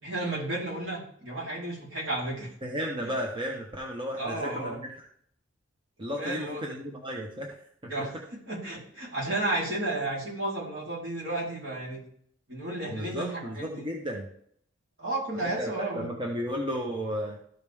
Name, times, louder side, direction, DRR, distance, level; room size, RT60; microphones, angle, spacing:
voice 1, 0.0-2.5 3.0-3.1 4.2-4.8 6.2-6.6 7.9-8.1 8.5-12.0 12.5-13.9 15.0-16.1, right 2 dB, 70° right, -6 dB, 3.9 m, -32 dB
voice 2, 2.6-5.0 6.0-7.6 12.9-14.3 15.4-17.4, equal, 25° right, -1 dB, 1.1 m, -34 dB
13.5 x 5.1 x 3.6 m, 0.65 s
head